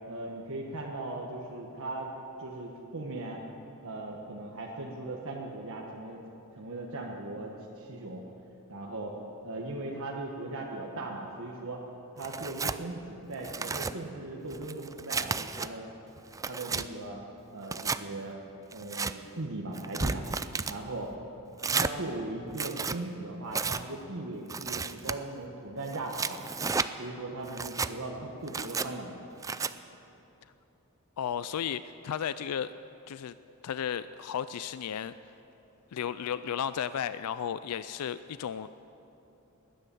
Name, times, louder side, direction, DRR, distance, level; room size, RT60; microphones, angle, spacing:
voice 1, 0.1-2.1 2.4-3.4 3.8-6.2 6.6-8.2 8.7-9.2 9.4-11.8 12.2-15.9 16.5-17.2 17.5-18.4 18.7-20.3 20.7-21.1 21.7-26.4 27.0-29.2, right 2 dB, 65° right, -1 dB, 1.3 m, -38 dB
Tearing, 12.2-12.8 13.3-13.9 14.5-15.7 16.2-16.9 17.6-18.0 18.7-19.1 19.7-20.8 21.6-21.9 22.5-23.0 23.5-23.8 24.5-25.2 25.9-26.9 27.5-27.9 28.5-28.9 29.4-29.7, right 4 dB, 15° right, 0.4 m, -32 dB
voice 2, 31.2-32.7 33.1-33.3 33.6-35.1 35.9-38.7, left 8 dB, 80° left, 14 dB, 0.4 m, -34 dB
20.5 x 10.0 x 7.0 m, 3.0 s
head